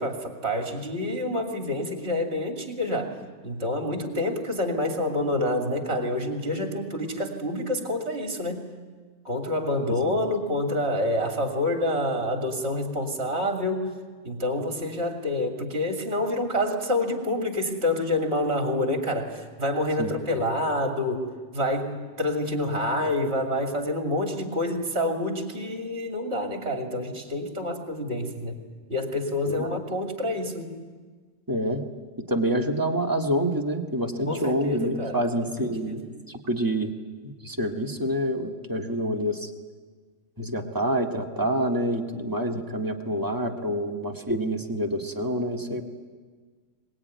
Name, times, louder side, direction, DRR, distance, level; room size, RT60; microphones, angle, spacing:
voice 1, 0.0-3.2 3.4-8.6 9.2-13.9 14.2-21.3 21.5-28.6 28.9-30.8 34.3-35.2 35.6-36.0, left 1 dB, 50° right, 3 dB, 3.0 m, -27 dB
voice 2, 31.5-31.8 32.3-36.0 36.5-36.9 37.2-39.5 40.4-45.8, right 1 dB, 15° right, 1 dB, 1.9 m, -27 dB
23.0 x 20.5 x 9.6 m, 1.5 s
omnidirectional pair, 1.4 m